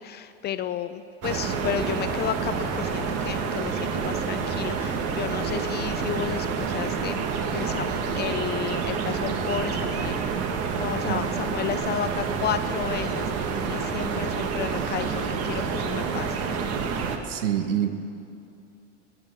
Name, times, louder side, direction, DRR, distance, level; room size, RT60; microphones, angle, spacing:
voice 1, 0.0-10.2 10.7-16.4, left 10 dB, 30° left, 11 dB, 0.5 m, -32 dB
sound 1, 1.2-17.2, right 5 dB, 45° right, 1.7 m, -28 dB
voice 2, 17.3-17.9, right 10 dB, 90° right, 9 dB, 1.3 m, -26 dB
21.5 x 8.8 x 7.4 m, 2.5 s
supercardioid pair, 120°, 35 cm